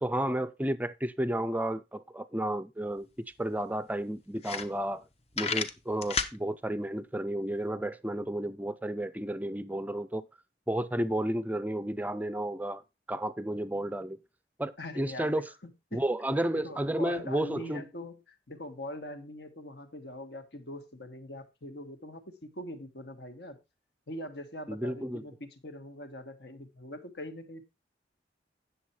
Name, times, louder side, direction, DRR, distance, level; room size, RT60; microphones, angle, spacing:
voice 1, 0.0-3.1 3.4-5.0 5.4-10.2 10.7-12.8 13.1-14.2 14.6-15.4 15.9-17.9 24.7-25.2, right 1 dB, 10° right, 0.5 m, -32 dB
sound 1, 3.0-3.1 3.4-3.5 4.0-4.1 4.4-5.0 5.3-6.4, left 5 dB, 35° left, 0.8 m, -31 dB
voice 2, 14.8-16.0 16.5-23.6 24.1-27.6, left 1 dB, 65° left, 1.5 m, -42 dB
9.3 x 6.9 x 4.3 m
head